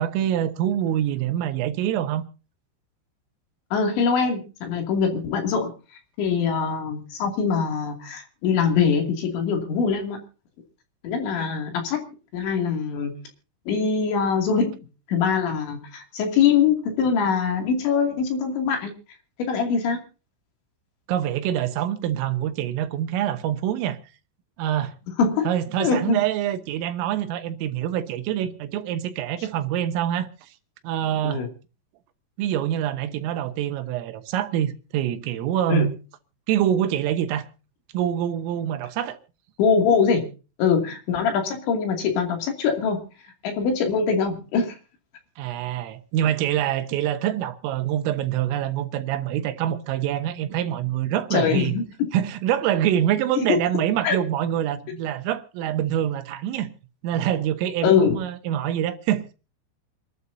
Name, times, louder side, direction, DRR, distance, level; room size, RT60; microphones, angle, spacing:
voice 1, 0.0-2.2 21.1-24.0 24.6-25.0 25.5-30.5 30.8-31.4 32.4-36.0 36.5-37.5 37.9-39.2 45.4-51.7 52.1-56.7 57.0-59.2, right 11 dB, 85° right, 3.7 m, -25 dB
voice 2, 3.7-5.7 6.2-10.2 11.0-12.0 12.3-13.1 13.7-14.8 15.1-18.9 19.4-20.0 25.2-25.5 25.8-26.2 31.2-31.5 35.7-35.9 39.6-40.3 40.6-43.0 43.4-44.8 51.3-52.1 53.4-53.5 54.0-54.2 57.8-58.2, left 6 dB, 65° left, 4.8 m, -23 dB
27.0 x 12.5 x 2.8 m
omnidirectional pair, 5.8 m